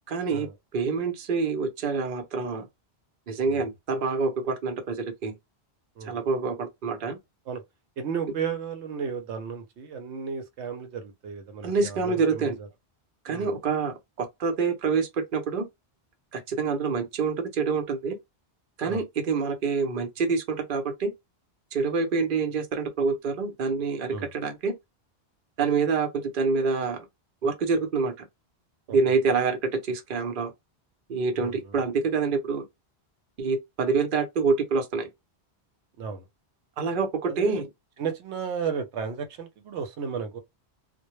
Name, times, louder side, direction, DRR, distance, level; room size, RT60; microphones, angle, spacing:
voice 1, 0.1-0.5 0.7-2.7 3.3-5.3 6.0-7.2 11.6-12.6 13.2-15.7 16.3-18.2 18.8-21.1 21.7-24.7 25.6-27.1 27.4-28.3 28.9-30.5 31.1-32.6 33.4-35.1 36.8-37.7, right 4 dB, 55° right, 0.8 m, -26 dB
voice 2, 8.0-12.7 13.3-13.5 18.8-19.0 24.1-24.3 28.9-29.0 31.3-31.8 36.0-36.3 37.3-37.6 38.0-40.4, right 6 dB, 85° right, 0.9 m, -34 dB
2.2 x 2.1 x 2.9 m
omnidirectional pair, 1.1 m